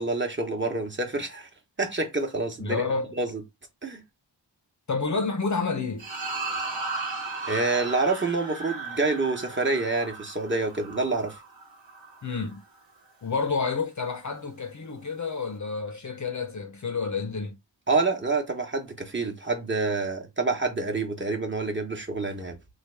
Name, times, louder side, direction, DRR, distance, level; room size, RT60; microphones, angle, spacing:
voice 1, 0.0-1.5 1.8-2.9 3.2-3.4 3.8-4.0 7.4-11.4 17.9-22.6, right 3 dB, 25° right, 1.0 m, -27 dB
voice 2, 2.6-3.2 4.9-6.0 12.2-12.6 13.2-17.6, left 4 dB, 40° left, 0.6 m, -29 dB
sound 1, 6.0-12.5, right 3 dB, 90° right, 1.3 m, -36 dB
3.2 x 2.3 x 3.3 m
wide cardioid pair, 70°, 44 cm